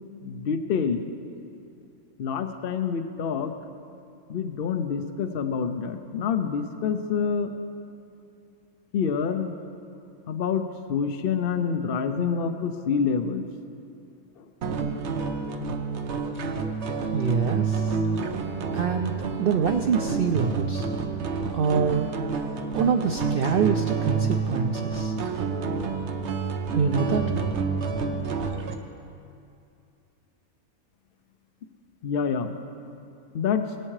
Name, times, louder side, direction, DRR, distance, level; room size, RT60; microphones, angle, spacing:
voice 1, 0.2-1.0 2.2-3.5 4.3-7.5 8.9-9.5 10.3-10.6 10.9-13.4 32.0-32.5 33.3-33.7, left 6 dB, 60° left, 8 dB, 0.6 m, -27 dB
sound 1, 14.6-28.7, right 4 dB, 55° right, 1.0 m, -29 dB
voice 2, 17.1-18.0 18.7-20.9 21.5-22.1 22.7-25.1 26.7-27.4, right 6 dB, 80° right, 6 dB, 0.5 m, -25 dB
20.5 x 8.8 x 3.2 m, 2.6 s
omnidirectional pair, 1.5 m